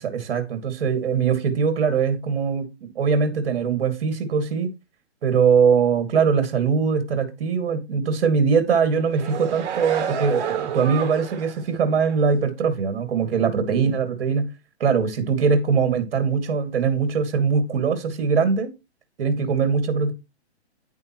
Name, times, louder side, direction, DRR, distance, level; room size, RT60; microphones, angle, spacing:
voice 1, 0.1-4.7 5.2-14.5 14.8-18.7 19.2-20.1, right 5 dB, 55° right, 2.5 m, -21 dB
sound 1, 8.9-11.6 12.0-12.2, right 8 dB, 40° right, 3.8 m, -30 dB
9.8 x 9.1 x 3.1 m
hypercardioid pair, 160°, 34 cm